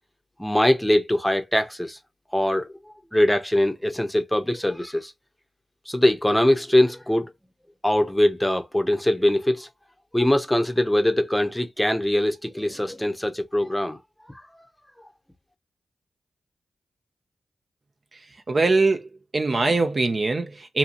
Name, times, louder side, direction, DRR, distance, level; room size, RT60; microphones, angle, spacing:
voice 1, 0.4-2.0 2.3-2.7 3.1-5.1 5.9-7.3 7.8-9.7 10.1-14.0, left 1 dB, 5° left, 0.7 m, -22 dB
voice 2, 18.5-20.8, right 3 dB, 50° right, 0.6 m, -22 dB
2.7 x 2.7 x 2.5 m
cardioid pair, 45°, 0 cm